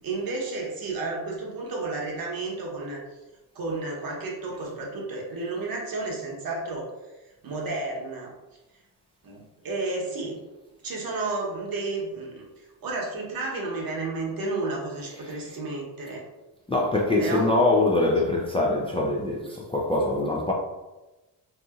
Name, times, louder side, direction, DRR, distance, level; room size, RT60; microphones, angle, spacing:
voice 1, 0.0-3.0 3.5-6.9 7.4-8.3 9.2-10.4 10.8-16.2 17.2-17.5, right 3 dB, 50° right, 1.0 m, -32 dB
voice 2, 15.1-15.4 16.7-20.5, left 2 dB, 15° left, 0.4 m, -24 dB
2.7 x 2.6 x 2.4 m
supercardioid pair, 55°, 44 cm